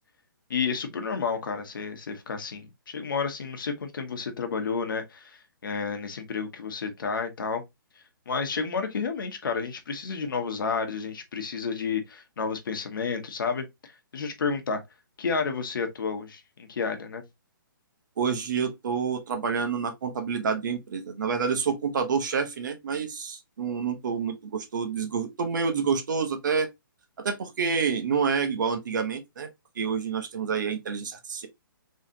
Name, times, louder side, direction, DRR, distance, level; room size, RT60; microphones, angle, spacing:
voice 1, 0.5-7.6 8.3-13.7 14.1-14.8 15.2-17.2, left 5 dB, 70° left, 1.1 m, -31 dB
voice 2, 18.2-26.7 27.2-29.5 29.8-31.5, right 6 dB, 60° right, 1.0 m, -28 dB
3.8 x 3.1 x 2.7 m
hypercardioid pair, 160°, 12 cm